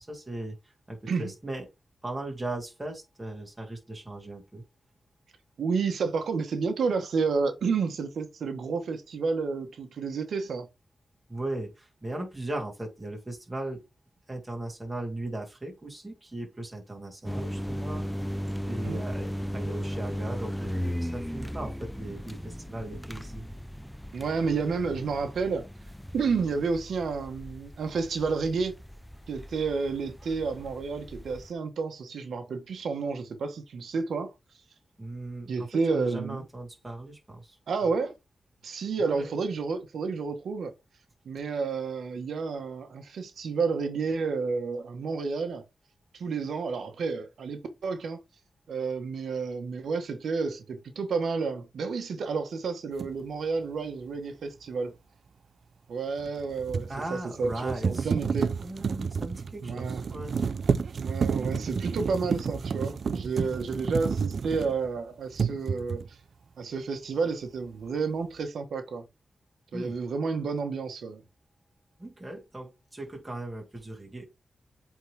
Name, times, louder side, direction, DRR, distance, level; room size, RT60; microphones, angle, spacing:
voice 1, 0.0-1.7 2.0-4.6 11.3-13.8 14.3-18.3 18.6-23.4 35.0-37.6 39.0-39.3 56.9-58.1 58.6-60.3 62.1-62.3 69.7-69.9 72.0-74.3, right 1 dB, 15° right, 2.9 m, -38 dB
voice 2, 5.6-10.7 18.7-19.0 24.1-25.6 26.1-28.8 29.3-34.3 35.5-36.4 37.7-38.1 38.6-40.7 41.2-45.6 46.1-48.2 48.7-54.9 55.9-58.5 59.6-60.0 61.0-66.2 66.6-69.0 69.7-71.2, right 4 dB, 90° right, 1.0 m, -30 dB
sound 1, 17.2-31.5, equal, 5° left, 0.6 m, -37 dB
sound 2, 53.0-53.1 56.2-65.0 65.3-66.1, right 5 dB, 70° right, 0.4 m, -30 dB
8.1 x 3.7 x 3.3 m
cardioid pair, 75°, 0 cm